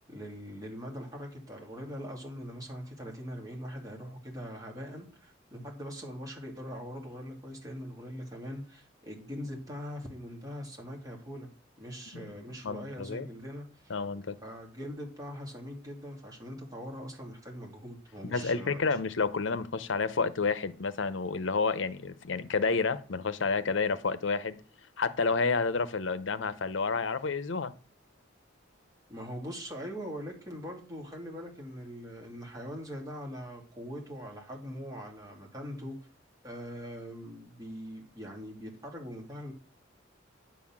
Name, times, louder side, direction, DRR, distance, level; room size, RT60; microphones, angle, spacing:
voice 1, 0.1-11.5 11.8-13.9 14.4-18.8 29.1-36.0 36.4-39.5, equal, 20° right, 2.6 m, -42 dB
voice 2, 12.1-13.3 13.9-14.4 18.2-24.6 25.0-27.7, left 4 dB, 70° left, 0.7 m, -30 dB
10.0 x 4.2 x 7.3 m
head